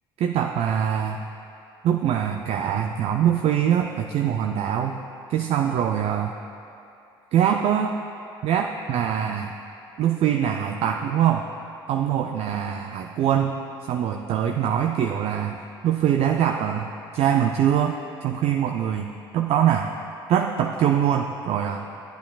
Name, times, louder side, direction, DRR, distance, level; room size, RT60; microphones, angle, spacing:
voice 1, 0.2-1.2 1.8-6.3 7.3-8.0 8.4-9.5 10.0-11.5 11.9-19.9 20.3-21.9, right 9 dB, 55° right, 3 dB, 0.4 m, -23 dB
11.5 x 8.5 x 2.3 m, 2.6 s
hypercardioid pair, 65°, 13 cm